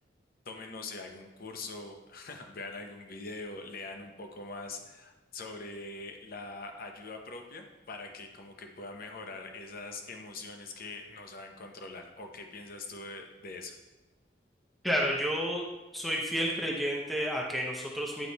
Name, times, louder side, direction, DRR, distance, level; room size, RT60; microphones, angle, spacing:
voice 1, 0.5-13.7, left 3 dB, 55° left, 4 dB, 0.8 m, -43 dB
voice 2, 14.8-15.7 15.9-18.3, equal, ahead, -2 dB, 0.8 m, -30 dB
9.0 x 3.2 x 4.1 m, 1.1 s
head